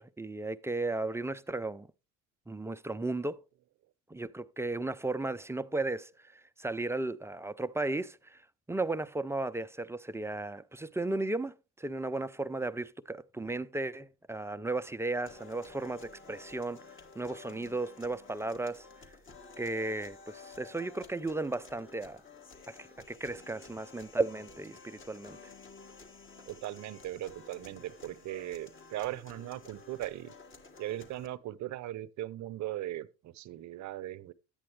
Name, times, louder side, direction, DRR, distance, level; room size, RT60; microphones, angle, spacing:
voice 1, 0.0-1.9 2.5-3.4 4.1-8.4 8.7-19.1 19.6-22.2 22.7-25.4, right 2 dB, 10° right, 0.4 m, -35 dB
sound 1, 15.3-31.3, left 4 dB, 35° left, 1.7 m, -52 dB
voice 2, 26.5-30.3 30.8-34.3, right 14 dB, 55° right, 0.7 m, -39 dB
10.5 x 8.6 x 3.3 m
supercardioid pair, 80°, 34 cm